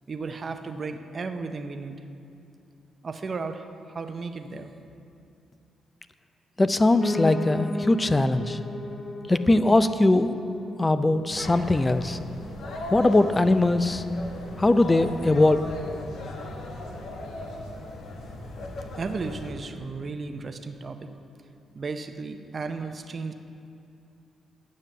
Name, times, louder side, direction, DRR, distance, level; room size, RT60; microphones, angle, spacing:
voice 1, 0.1-2.0 3.0-4.7 19.0-21.1 21.7-23.3, right 4 dB, 40° right, 7 dB, 0.6 m, -34 dB
voice 2, 6.6-8.6 9.3-10.4 10.8-12.2 12.9-14.0 14.6-15.7, left 2 dB, 20° left, 12 dB, 0.4 m, -21 dB
Piano, 7.0-16.1 16.5-17.7 18.0-18.1 18.3-18.4 18.6-18.7 19.3-19.4, left 2 dB, 35° left, 0.8 m, -37 dB
sound 1, 11.3-19.5, left 2 dB, 75° left, 1.1 m, -37 dB
9.3 x 7.5 x 6.6 m, 2.6 s
cardioid pair, 90°, 0 cm